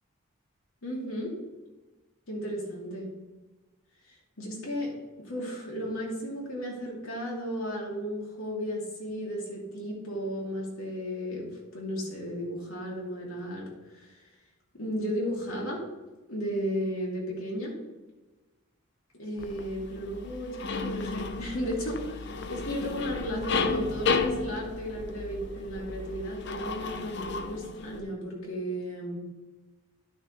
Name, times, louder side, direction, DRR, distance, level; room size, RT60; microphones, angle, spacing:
voice 1, 0.8-1.4 2.3-3.1 4.4-14.2 14.7-15.9 16.3-17.8 19.2-29.2, equal, 85° left, -3 dB, 2.8 m, -34 dB
sound 1, 19.4-28.0, left 4 dB, 55° left, 0.6 m, -33 dB
11.5 x 6.4 x 3.3 m, 1.2 s
head